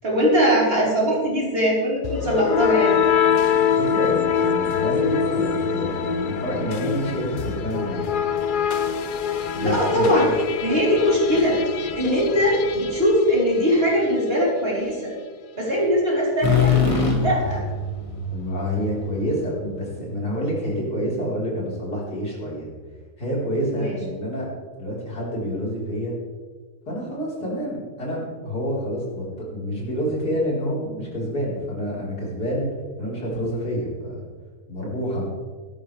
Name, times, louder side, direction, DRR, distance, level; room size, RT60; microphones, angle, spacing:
voice 1, 0.0-3.0 9.6-11.6 12.0-15.1 15.6-16.8 17.2-17.6 23.7-24.0, equal, 35° right, -5 dB, 4.5 m, -21 dB
sound 1, 2.0-13.9, left 7 dB, 60° left, 0.5 m, -24 dB
voice 2, 3.7-8.2 9.5-10.1 18.3-22.7 23.2-24.5 24.8-26.1 26.9-29.2 29.5-32.7 33.0-34.3 34.7-35.2, equal, 90° left, -5 dB, 5.1 m, -28 dB
sound 2, 16.4-20.2, left 5 dB, 20° left, 2.1 m, -23 dB
18.0 x 13.0 x 3.5 m, 1.5 s
omnidirectional pair, 1.6 m